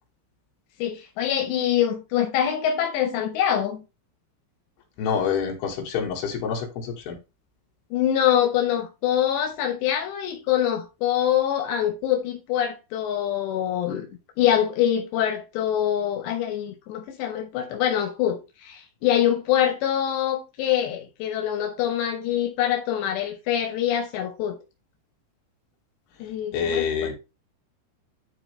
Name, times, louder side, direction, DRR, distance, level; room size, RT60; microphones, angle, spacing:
voice 1, 0.8-3.8 7.9-14.1 14.4-24.6 26.2-27.2, left 10 dB, 90° left, 3.4 m, -24 dB
voice 2, 5.0-7.2 26.5-27.2, left 6 dB, 75° left, 3.8 m, -27 dB
12.0 x 4.1 x 3.2 m
omnidirectional pair, 4.9 m